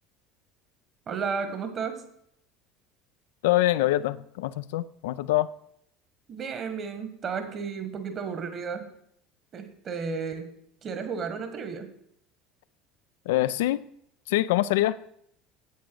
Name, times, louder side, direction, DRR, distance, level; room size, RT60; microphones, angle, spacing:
voice 1, 1.1-2.0 6.3-8.9 9.5-10.5 10.8-11.9, right 5 dB, 40° right, 1.6 m, -33 dB
voice 2, 3.4-5.5 13.3-13.8 14.3-15.0, left 15 dB, 65° left, 0.3 m, -24 dB
9.4 x 8.3 x 4.7 m
figure-of-eight pair, 65°, 0 cm